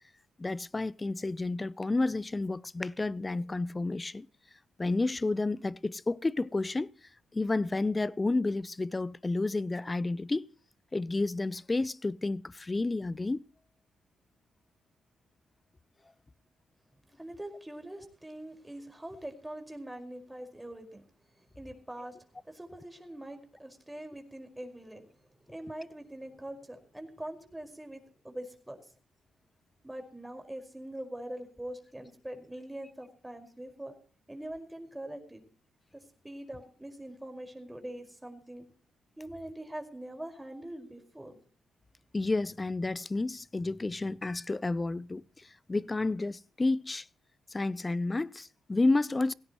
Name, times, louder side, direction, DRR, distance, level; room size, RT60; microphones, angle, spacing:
voice 1, 0.4-4.3 4.8-6.9 7.3-10.5 10.9-13.4 42.1-47.1 47.5-49.3, left 2 dB, 25° left, 0.7 m, -31 dB
voice 2, 17.2-21.0 21.4-22.2 22.4-25.1 25.5-28.9 29.8-34.0 34.3-35.4 35.9-38.7 39.2-41.4, right 1 dB, 10° right, 5.1 m, -43 dB
18.0 x 16.5 x 3.1 m
hypercardioid pair, 45°, 0 cm